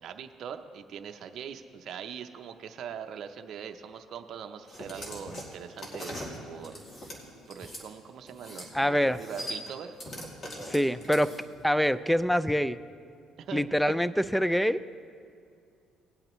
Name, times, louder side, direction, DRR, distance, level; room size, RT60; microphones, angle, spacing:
voice 1, 0.0-7.2 7.5-10.0 13.4-13.6, right 8 dB, 60° right, 6 dB, 0.6 m, -42 dB
sound 1, 4.7-7.8 8.3-8.7 9.0-11.6, equal, 40° left, 2.4 m, -41 dB
voice 2, 8.7-9.2 10.6-11.3 11.6-12.8 13.5-14.8, equal, ahead, 15 dB, 0.3 m, -25 dB
18.5 x 8.6 x 3.0 m, 2.3 s
cardioid pair, 95°, 0 cm